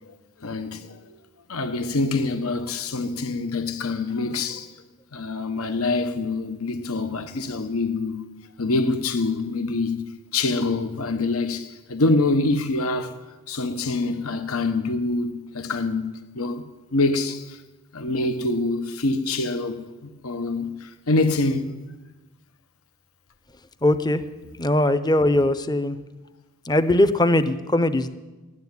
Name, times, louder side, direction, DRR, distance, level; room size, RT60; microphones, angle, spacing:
voice 1, 0.4-1.2 1.5-4.7 5.1-8.2 8.6-10.0 10.3-13.1 13.5-16.6 16.9-17.6 17.9-21.7, left 3 dB, 70° left, 1.0 m, -25 dB
voice 2, 23.8-24.2 24.6-26.0 26.7-28.1, left 1 dB, 20° left, 0.7 m, -20 dB
13.0 x 9.6 x 9.5 m
head